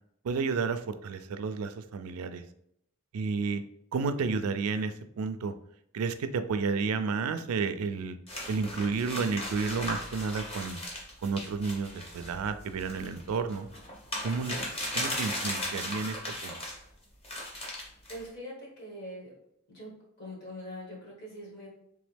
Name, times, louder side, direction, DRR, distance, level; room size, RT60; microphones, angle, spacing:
voice 1, 0.2-2.4 3.1-3.6 3.9-5.5 5.9-8.2 8.5-10.8 11.2-13.7 14.2-14.6 14.9-16.6, right 4 dB, 90° right, 10 dB, 0.4 m, -31 dB
sound 1, 8.3-16.8 17.2-18.3, left 1 dB, 25° left, 0.9 m, -37 dB
voice 2, 18.1-19.3 19.7-21.7, equal, 50° left, -3 dB, 1.5 m, -43 dB
3.4 x 3.0 x 3.3 m, 0.73 s
head